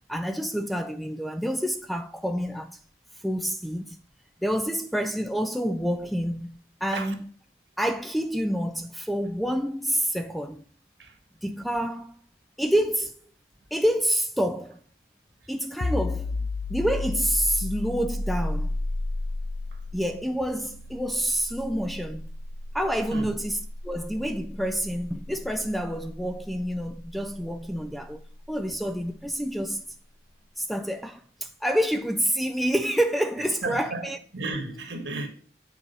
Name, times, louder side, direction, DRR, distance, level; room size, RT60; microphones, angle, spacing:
voice 1, 0.1-2.8 3.2-4.0 4.4-7.3 7.8-10.6 11.4-12.2 12.6-13.1 13.7-14.8 15.5-18.8 19.9-22.2 22.7-28.2 28.5-29.8 30.6-34.2, equal, ahead, 0.4 m, -28 dB
sound 1, 15.8-27.2, left 2 dB, 80° left, 0.7 m, -33 dB
voice 2, 33.6-35.3, right 2 dB, 75° right, 1.6 m, -33 dB
7.8 x 4.7 x 5.3 m
head